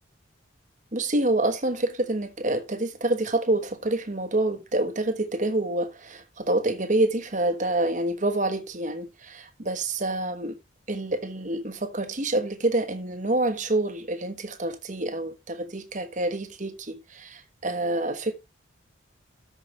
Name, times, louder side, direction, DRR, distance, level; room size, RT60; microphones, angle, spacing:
voice 1, 0.9-10.6 10.9-18.3, right 2 dB, 40° right, 1.2 m, -27 dB
13.5 x 5.0 x 3.1 m
head